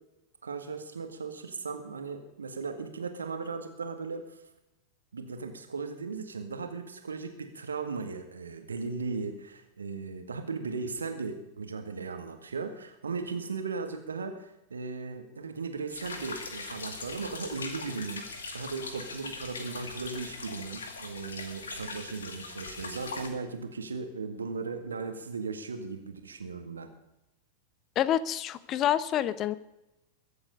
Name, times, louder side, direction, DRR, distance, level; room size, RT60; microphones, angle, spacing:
voice 1, 0.4-4.4 5.1-26.9, right 4 dB, 75° right, 6 dB, 1.9 m, -37 dB
sound 1, 15.9-23.3, left 3 dB, 70° left, 2.1 m, -41 dB
voice 2, 28.0-29.5, left 11 dB, 35° left, 16 dB, 0.8 m, -27 dB
22.5 x 8.0 x 5.3 m, 0.93 s
figure-of-eight pair, 90°, 0 cm